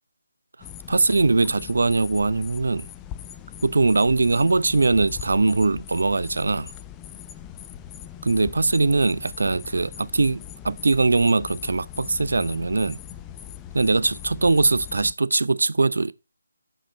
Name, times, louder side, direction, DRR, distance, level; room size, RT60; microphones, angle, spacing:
sound 1, 0.6-15.1, left 10 dB, 15° left, 0.3 m, -41 dB
voice 1, 0.9-2.9 3.6-6.7 8.2-13.0 13.7-16.1, right 3 dB, 65° right, 0.4 m, -21 dB
6.4 x 5.0 x 4.4 m
figure-of-eight pair, 155°, 0 cm